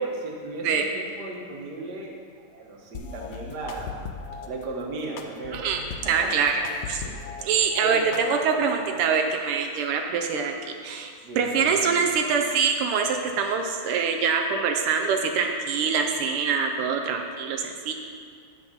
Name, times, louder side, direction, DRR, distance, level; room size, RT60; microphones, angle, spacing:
voice 1, 0.0-3.9 4.5-6.3 7.1-7.5 7.8-8.1 8.9-9.0 11.2-12.0, right 2 dB, 55° right, 0 dB, 1.7 m, -36 dB
sound 1, 2.9-4.5 5.2-7.4 7.8-8.7, left 6 dB, 85° left, 0.7 m, -38 dB
voice 2, 6.1-6.6 6.9-7.0 7.4-17.9, right 6 dB, 85° right, 3 dB, 1.6 m, -24 dB
9.0 x 7.0 x 5.6 m, 2.2 s
omnidirectional pair, 2.4 m